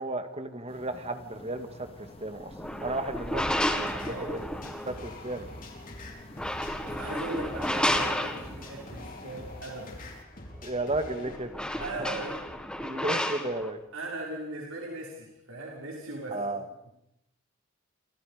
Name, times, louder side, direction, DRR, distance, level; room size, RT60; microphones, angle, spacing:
voice 1, 0.0-1.9 2.2-2.5 2.8-4.4 4.9-5.5 10.6-11.8 12.8-13.8 16.3-16.6, right 2 dB, 30° right, 8 dB, 2.2 m, -33 dB
sound 1, 0.7-10.2, left 1 dB, 30° left, 2.5 m, -49 dB
sound 2, 2.4-5.1 6.2-8.8 10.8-10.9 11.2-13.7, left 1 dB, 5° left, 2.0 m, -31 dB
sound 3, 3.4-11.4, left 2 dB, 45° left, 5.2 m, -45 dB
voice 2, 6.9-10.0 11.8-12.4 13.9-16.9, right 2 dB, 85° right, -2 dB, 6.0 m, -38 dB
28.5 x 28.0 x 5.2 m, 0.82 s
head